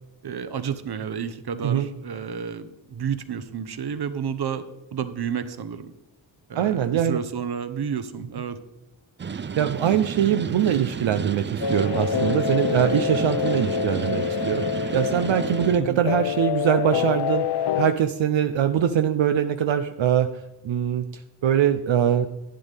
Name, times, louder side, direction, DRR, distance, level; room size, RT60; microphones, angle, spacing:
voice 1, 0.2-4.6 4.9-5.9 6.5-8.6 15.8-16.0, right 7 dB, 55° right, 11 dB, 0.9 m, -31 dB
voice 2, 6.5-7.2 9.6-17.5 17.8-20.3 20.6-21.1 21.4-22.3, right 9 dB, 80° right, 8 dB, 0.7 m, -22 dB
sound 1, 9.2-15.8, right 6 dB, 25° right, 0.4 m, -32 dB
sound 2, 11.6-17.9, left 8 dB, 60° left, 0.5 m, -26 dB
11.5 x 9.8 x 3.4 m, 0.96 s
wide cardioid pair, 90°, 46 cm